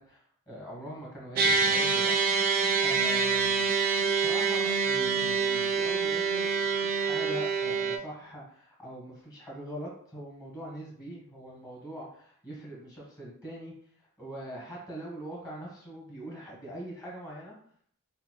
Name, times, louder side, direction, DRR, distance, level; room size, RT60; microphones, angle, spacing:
voice 1, 0.0-3.7 4.1-13.7 14.2-17.5, equal, 15° left, -3 dB, 1.1 m, -42 dB
sound 1, 1.4-8.0, right 5 dB, 40° right, 0.3 m, -26 dB
4.1 x 2.1 x 2.3 m, 0.62 s
head